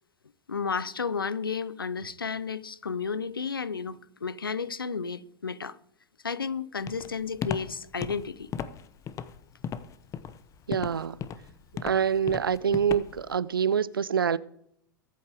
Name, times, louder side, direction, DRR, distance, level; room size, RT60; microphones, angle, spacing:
voice 1, 0.5-5.7 6.2-8.5, left 5 dB, 85° left, 0.7 m, -32 dB
Walk footsteps, 6.9-13.3, left 8 dB, 30° left, 0.8 m, -36 dB
voice 2, 10.7-11.2 11.8-14.4, right 7 dB, 85° right, 0.5 m, -26 dB
23.0 x 8.3 x 3.5 m
figure-of-eight pair, 95°, 11 cm